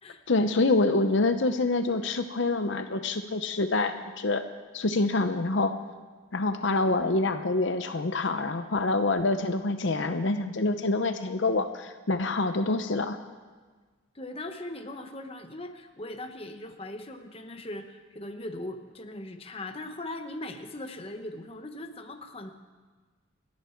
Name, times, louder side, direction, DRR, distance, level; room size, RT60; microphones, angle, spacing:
voice 1, 0.3-4.4 4.7-5.7 6.3-13.2, left 2 dB, 65° left, 8 dB, 0.8 m, -26 dB
voice 2, 14.1-22.5, left 1 dB, 30° left, 6 dB, 1.0 m, -39 dB
29.0 x 10.5 x 4.5 m, 1.4 s
head